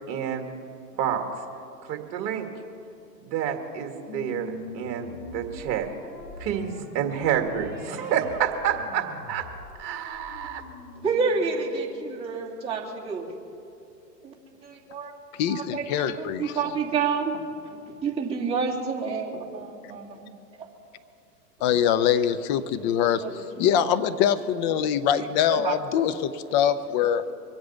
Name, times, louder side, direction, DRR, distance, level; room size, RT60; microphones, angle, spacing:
voice 1, 0.1-0.5 0.9-1.2 1.9-2.5 3.2-5.9 6.4-9.4 9.8-10.6, right 8 dB, 40° right, 5 dB, 1.9 m, -28 dB
sound 1, 4.1-12.8, left 2 dB, 85° left, 4.5 m, -43 dB
voice 2, 11.0-13.4 14.2-14.3 14.6-15.1 15.5-17.4 17.7-20.3 20.6-20.7 23.2-23.9 24.6-24.7 25.5-25.7, right 5 dB, 10° right, -5 dB, 2.8 m, -29 dB
voice 3, 15.4-16.5 21.6-23.2 23.6-27.2, left 9 dB, 30° left, 13 dB, 0.5 m, -23 dB
23.5 x 7.9 x 7.1 m, 2.6 s
hypercardioid pair, 120°, 50 cm